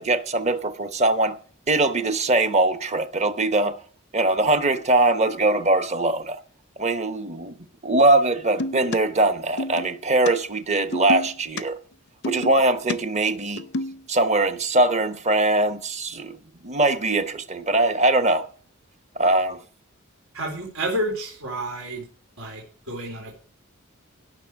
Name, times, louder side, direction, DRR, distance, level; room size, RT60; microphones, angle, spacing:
voice 1, 0.0-1.4 1.7-3.8 4.1-6.4 6.8-7.5 7.8-11.8 12.2-13.6 14.1-16.4 16.6-18.5 19.2-19.6, right 2 dB, 35° right, 1.0 m, -21 dB
sound 1, 8.6-9.0 9.6-9.9 10.3-10.4 10.9-11.6 12.2-13.0 13.4-14.0, left 2 dB, 55° left, 0.6 m, -29 dB
voice 2, 20.3-22.0 22.4-23.4, right 1 dB, 85° right, 4.0 m, -30 dB
17.0 x 6.6 x 4.8 m
head